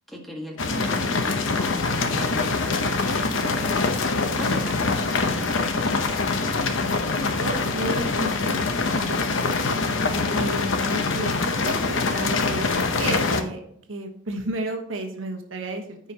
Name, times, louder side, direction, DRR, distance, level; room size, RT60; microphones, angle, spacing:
voice 1, 0.1-4.0 4.4-6.3, equal, ahead, -1 dB, 1.6 m, -38 dB
sound 1, 0.6-13.4, left 3 dB, 65° left, 0.9 m, -24 dB
voice 2, 7.4-9.9 10.3-13.6 13.9-16.0, right 2 dB, 70° right, 3 dB, 1.3 m, -33 dB
14.5 x 5.1 x 2.9 m, 0.70 s
head